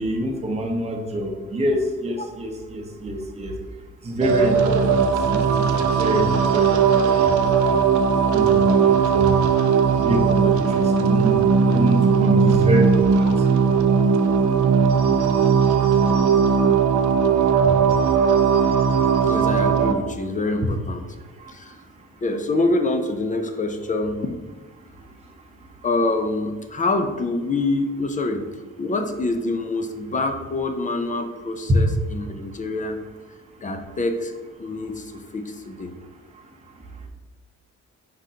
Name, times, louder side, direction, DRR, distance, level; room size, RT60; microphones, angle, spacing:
voice 1, 0.0-3.5 4.0-5.0 5.3-5.7 6.0-7.3 7.6-7.7 8.3-9.3 10.0-13.3 19.4-19.5 31.7-31.8, equal, 20° right, 1 dB, 0.8 m, -26 dB
sound 1, 4.2-19.9, right 6 dB, 70° right, 0.5 m, -18 dB
voice 2, 19.2-21.1 21.5-21.7 22.2-24.3 25.8-28.5 28.8-33.0 33.6-34.3 34.6-35.9, left 2 dB, 25° left, 6 dB, 0.5 m, -26 dB
5.1 x 3.7 x 2.8 m, 1.3 s
cardioid pair, 90°, 30 cm